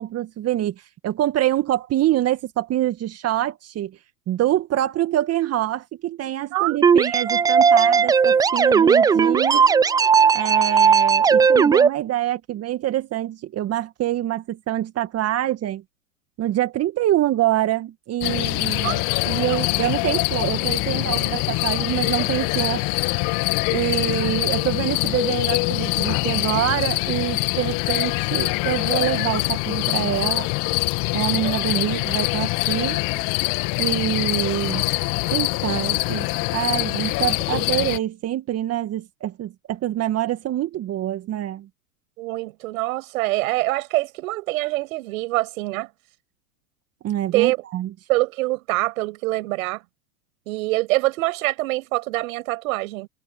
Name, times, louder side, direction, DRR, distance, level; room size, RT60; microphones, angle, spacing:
voice 1, 0.0-3.9 4.3-9.6 10.3-15.8 16.4-22.9 23.7-30.5 31.1-33.0 33.8-34.9 35.3-36.3 36.5-41.7 47.0-47.9, right 13 dB, 30° right, 1.9 m, -25 dB
sound 1, 6.8-11.9, right 6 dB, 10° right, 0.4 m, -16 dB
sound 2, 18.2-38.0, left 26 dB, 45° left, 1.4 m, -24 dB
voice 2, 42.2-45.9 47.3-47.6 48.1-49.8 50.5-53.1, right 20 dB, 60° right, 6.0 m, -24 dB
hypercardioid pair, 100°, 46 cm